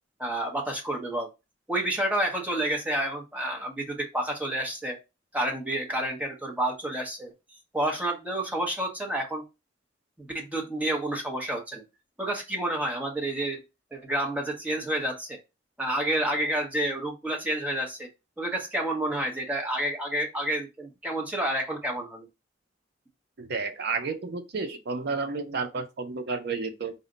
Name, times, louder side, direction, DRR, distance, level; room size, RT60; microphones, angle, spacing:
voice 1, 0.2-1.3 1.7-5.0 5.3-7.3 7.7-9.4 10.2-11.8 12.2-13.6 13.9-15.4 15.8-18.1 18.4-22.3, right 1 dB, 10° right, 1.0 m, -29 dB
voice 2, 23.4-26.9, right 4 dB, 60° right, 0.6 m, -31 dB
4.0 x 2.1 x 3.8 m
head